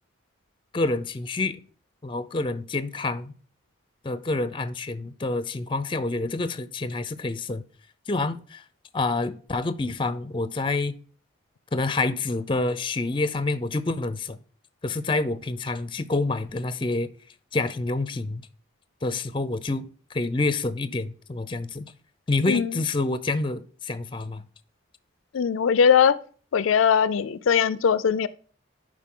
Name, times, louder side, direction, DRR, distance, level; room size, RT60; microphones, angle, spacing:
voice 1, 0.7-1.6 2.0-3.3 4.0-7.6 8.1-8.6 8.9-10.9 11.7-14.4 14.8-17.1 17.5-18.4 19.0-19.9 20.1-21.9 22.3-24.4, left 3 dB, 25° left, 0.5 m, -27 dB
voice 2, 25.3-26.2 26.5-28.3, left 7 dB, 85° left, 0.4 m, -20 dB
11.0 x 5.0 x 3.7 m
head